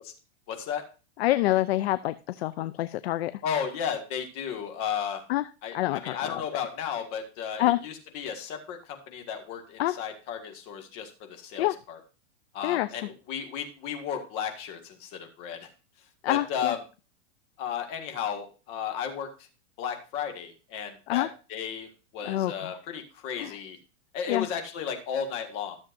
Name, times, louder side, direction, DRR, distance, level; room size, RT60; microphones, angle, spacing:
voice 1, 0.5-0.8 3.4-5.2 5.6-12.0 12.5-15.7 16.3-16.8 17.6-19.5 19.8-21.9 22.1-23.8 24.1-25.8, left 8 dB, 35° left, 4 dB, 1.8 m, -34 dB
voice 2, 1.2-3.3 5.3-5.4 5.7-6.4 7.6-7.8 9.8-10.0 11.6-11.8 12.6-12.9 16.2-16.7 21.1-21.3 22.2-22.8 23.4-23.6 24.3-24.5, left 15 dB, 55° left, 14 dB, 0.5 m, -26 dB
13.0 x 7.2 x 2.6 m, 0.34 s
supercardioid pair, 150°, 37 cm